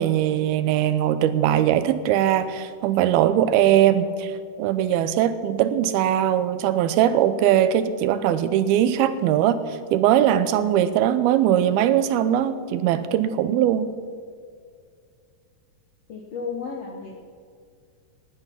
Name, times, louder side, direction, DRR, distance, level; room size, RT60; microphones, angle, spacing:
voice 1, 0.0-13.9, right 10 dB, 85° right, 12 dB, 2.7 m, -21 dB
voice 2, 16.1-17.2, left 5 dB, 65° left, 0 dB, 1.5 m, -33 dB
18.0 x 10.5 x 5.8 m, 2.2 s
omnidirectional pair, 4.4 m